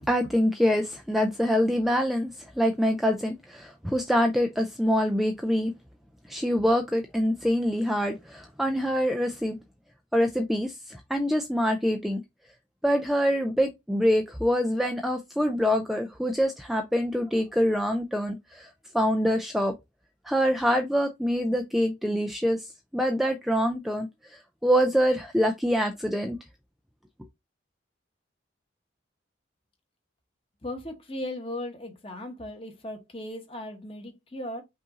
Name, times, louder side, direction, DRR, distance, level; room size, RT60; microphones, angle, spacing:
voice 1, 0.1-2.3 2.6-5.7 6.3-9.6 10.1-12.2 12.8-19.7 20.3-22.7 22.9-26.4, equal, ahead, 0.4 m, -25 dB
voice 2, 30.6-34.6, left 1 dB, 30° left, 1.2 m, -37 dB
5.4 x 2.6 x 3.8 m
head